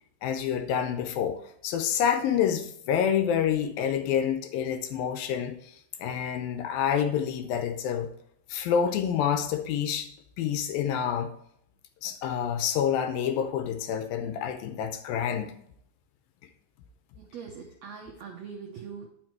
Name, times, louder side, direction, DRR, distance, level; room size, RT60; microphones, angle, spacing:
voice 1, 0.2-5.7 6.0-8.1 8.5-10.1 10.4-11.3 12.0-15.5, left 8 dB, 75° left, 8 dB, 2.4 m, -28 dB
voice 2, 17.2-19.1, right 6 dB, 75° right, 0 dB, 1.5 m, -42 dB
10.5 x 5.9 x 4.5 m, 0.71 s
omnidirectional pair, 4.4 m